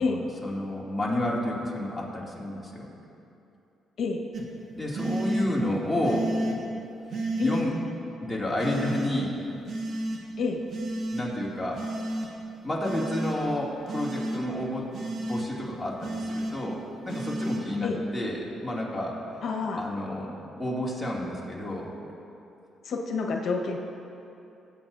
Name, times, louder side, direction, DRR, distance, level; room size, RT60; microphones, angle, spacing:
voice 1, 0.4-2.9 4.7-6.3 7.4-7.7 8.2-9.4 11.1-11.8 12.6-14.9 15.3-19.4 19.7-20.3 20.6-21.9, left 1 dB, 5° left, -5 dB, 2.5 m, -30 dB
sound 1, 4.3-4.4 4.9-5.5 6.0-6.6 7.1-7.6 8.6-9.1 9.7-10.2 10.7-11.2 11.8-12.3 12.8-13.4 13.9-14.4 14.9-15.5 16.0-16.5 17.1-17.6, right 1 dB, 65° right, 1.5 m, -31 dB
voice 2, 19.4-19.8 22.8-23.8, left 4 dB, 65° left, 1 dB, 1.2 m, -28 dB
21.0 x 8.6 x 2.7 m, 2.8 s
cardioid pair, 90°, 0 cm